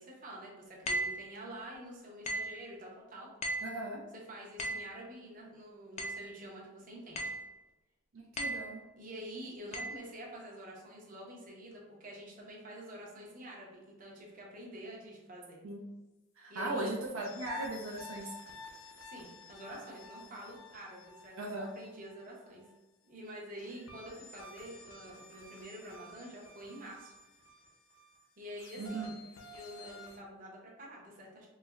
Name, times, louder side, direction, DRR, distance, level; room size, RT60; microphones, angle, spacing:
voice 1, 0.0-3.3 4.1-7.3 9.0-15.6 16.5-16.9 19.0-22.6 23.0-27.1 28.4-29.2 29.5-31.5, right 1 dB, 40° right, -3 dB, 0.8 m, -47 dB
sound 1, 0.9-1.2 2.2-2.6 3.4-3.8 4.6-4.9 6.0-6.3 7.2-7.5 8.4-8.7 9.7-10.0, right 1 dB, 35° left, 0.3 m, -36 dB
voice 2, 3.6-4.0 8.1-8.8 15.6-15.8 16.4-18.3 21.4-21.7 28.8-29.1, right 2 dB, 80° right, -1 dB, 0.5 m, -38 dB
sound 2, 17.2-22.7 23.6-30.2, left 2 dB, 80° left, 0.6 m, -52 dB
4.1 x 2.1 x 2.3 m, 1.1 s
head